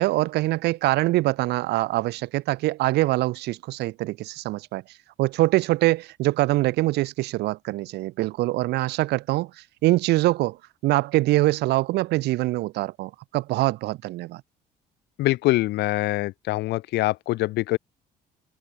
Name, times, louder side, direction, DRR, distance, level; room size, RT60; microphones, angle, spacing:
voice 1, 0.0-4.8 5.2-9.5 9.8-10.6 10.8-14.4, right 18 dB, 80° right, 1.0 m, -24 dB
voice 2, 15.2-17.8, left 18 dB, 85° left, 2.8 m, -24 dB
open air
cardioid pair, 110°, 17 cm